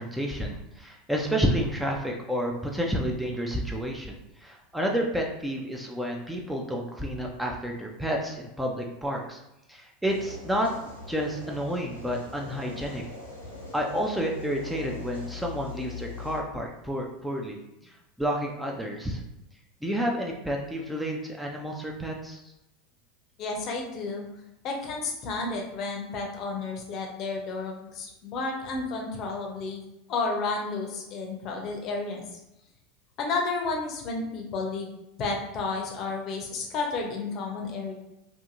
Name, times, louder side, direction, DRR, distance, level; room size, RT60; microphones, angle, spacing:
voice 1, 0.0-9.4 9.7-10.7 11.1-13.0 13.7-17.6 17.8-19.2 19.8-22.4, equal, 5° right, 0 dB, 0.4 m, -30 dB
sound 1, 10.0-16.4, left 3 dB, 80° left, 0.7 m, -41 dB
voice 2, 23.4-24.3 24.6-29.8 30.1-32.2 33.2-34.9 35.2-37.9, left 3 dB, 45° left, 1 dB, 0.6 m, -31 dB
2.7 x 2.5 x 2.5 m, 0.90 s
figure-of-eight pair, 80°, 0 cm